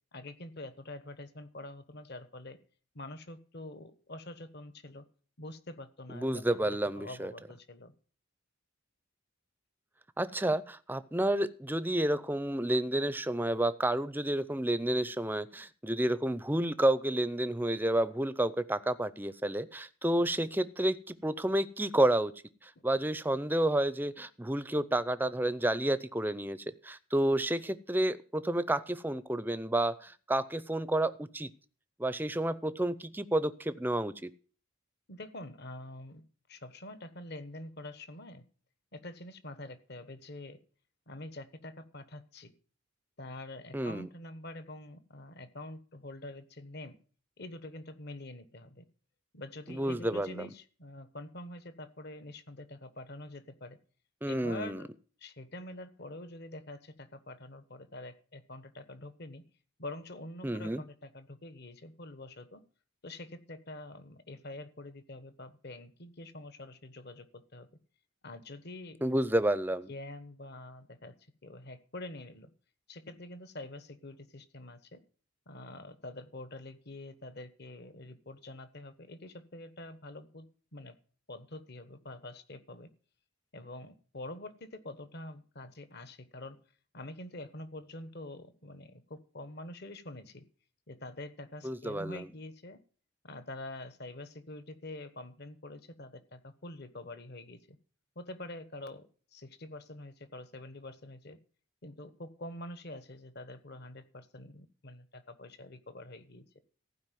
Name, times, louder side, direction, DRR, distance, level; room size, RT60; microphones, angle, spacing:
voice 1, 0.1-2.6 2.9-5.0 5.4-7.9 22.8-22.9 35.1-38.5 38.9-40.6 41.1-42.5 43.2-47.0 47.4-48.8 49.3-53.8 54.3-54.9 55.2-59.4 59.8-62.6 63.0-67.7 68.2-69.0 69.9-71.1 71.4-72.5 72.9-75.0 75.5-81.0 81.3-82.9 83.5-86.6 86.9-90.5 90.9-92.8 93.2-97.8 98.1-101.4 101.8-106.5, left 2 dB, 50° left, 1.2 m, -46 dB
voice 2, 6.1-7.3 10.2-22.3 22.6-31.5 32.0-34.3 43.7-44.1 49.7-50.5 54.2-54.8 60.4-60.8 69.0-69.9 91.6-92.3, right 1 dB, 10° right, 0.5 m, -30 dB
15.0 x 5.1 x 9.2 m
head